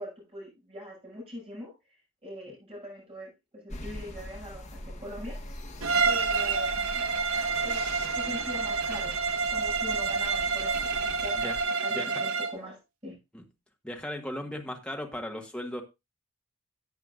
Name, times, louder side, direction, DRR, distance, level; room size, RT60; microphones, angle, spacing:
voice 1, 0.0-5.4 6.0-7.0 7.6-7.9 8.1-9.2 9.5-13.2, left 1 dB, 25° right, -2 dB, 6.8 m, -42 dB
sound 1, 3.7-11.6, left 1 dB, 30° left, 1.5 m, -42 dB
Bowed string instrument, 5.8-12.6, right 5 dB, 70° right, 0.9 m, -28 dB
voice 2, 11.9-12.2 13.3-13.4 13.8-15.8, left 1 dB, 5° left, 2 dB, 1.4 m, -37 dB
14.0 x 8.1 x 2.5 m, 0.23 s
head